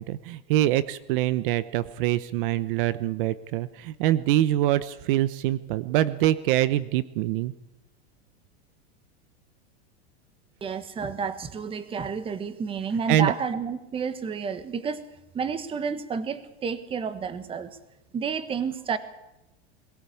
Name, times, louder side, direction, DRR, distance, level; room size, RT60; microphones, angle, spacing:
voice 1, 0.0-7.5 13.1-13.3, right 13 dB, 55° right, 15 dB, 0.9 m, -24 dB
voice 2, 10.6-17.7 18.1-19.0, right 6 dB, 15° right, 11 dB, 1.4 m, -30 dB
22.5 x 16.5 x 8.5 m, 0.90 s
supercardioid pair, 155°, 32 cm